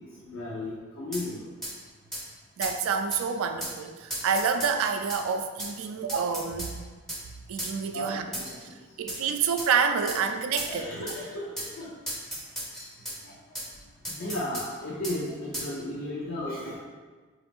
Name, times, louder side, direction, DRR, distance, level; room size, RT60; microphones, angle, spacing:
voice 1, 0.2-1.4 7.9-8.8 10.7-11.9 13.2-13.6 14.1-16.8, left 1 dB, 65° left, -6 dB, 0.6 m, -35 dB
sound 1, 1.1-1.3 1.6-1.7 2.1-2.2 2.6-2.8 3.1-3.2 3.6-3.8 4.1-5.2 5.6-5.7 6.1-6.7 7.1-7.2 7.6-7.7 8.3-8.6 9.1-9.2 9.6-9.7 10.1-10.2 10.6-10.7 11.1-11.2 11.6-11.7 12.1-13.2 13.5-13.7 14.0-14.7 15.0-15.2 15.5-15.7, right 1 dB, ahead, 0.5 m, -35 dB
voice 2, 2.6-6.7 7.5-8.3 9.0-11.1, right 6 dB, 80° right, 7 dB, 0.3 m, -28 dB
4.9 x 2.5 x 3.5 m, 1.4 s
head